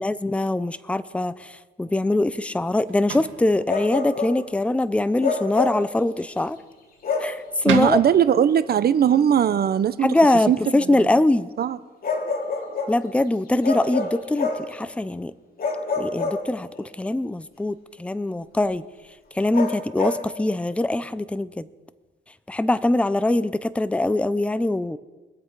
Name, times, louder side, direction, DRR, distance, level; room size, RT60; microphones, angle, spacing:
voice 1, 0.0-6.6 7.2-8.0 10.0-11.5 12.9-15.3 16.0-18.8 19.3-21.7 22.5-25.0, left 2 dB, 5° left, 15 dB, 0.6 m, -23 dB
sound 1, 1.9-11.1, right 7 dB, 75° right, 1.8 m, -39 dB
Bark, 3.7-4.4 5.2-5.9 7.0-7.4 9.1-9.2 12.0-13.0 13.6-14.7 15.6-16.9 19.5-20.3, left 4 dB, 45° left, 3.0 m, -27 dB
voice 2, 7.6-10.1 10.5-11.1 11.6-11.8, right 9 dB, 50° right, 15 dB, 0.7 m, -20 dB
24.0 x 8.0 x 4.7 m, 1.3 s
cardioid pair, 90°, 20 cm